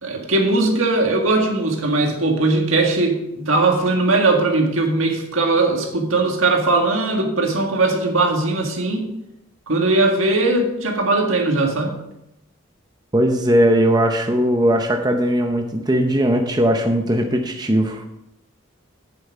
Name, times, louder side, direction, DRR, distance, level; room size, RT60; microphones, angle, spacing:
voice 1, 0.0-9.1 9.7-12.0, right 2 dB, 85° right, 1 dB, 1.9 m, -19 dB
voice 2, 13.1-18.0, equal, 20° right, 4 dB, 0.7 m, -18 dB
8.8 x 7.7 x 4.7 m, 0.86 s
head